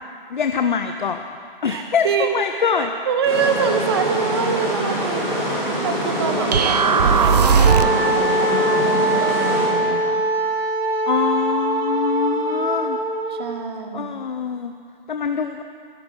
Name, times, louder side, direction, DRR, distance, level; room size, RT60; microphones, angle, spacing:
voice 1, 0.3-1.2 1.6-2.9 11.1-13.0 13.9-14.7 15.1-15.6, left 6 dB, 55° left, 6 dB, 0.8 m, -23 dB
voice 2, 1.7-2.4 2.7-5.3 5.8-10.2 13.3-14.2, right 6 dB, 25° right, 6 dB, 0.9 m, -25 dB
sound 1, 3.2-9.7, equal, 10° right, 3.6 m, -24 dB
sound 2, 6.5-8.1, right 6 dB, 45° right, 0.4 m, -17 dB
Wind instrument woodwind instrument, 7.6-13.6, right 1 dB, 85° right, 1.5 m, -22 dB
23.5 x 11.5 x 3.9 m, 2.3 s
figure-of-eight pair, 135°, 29 cm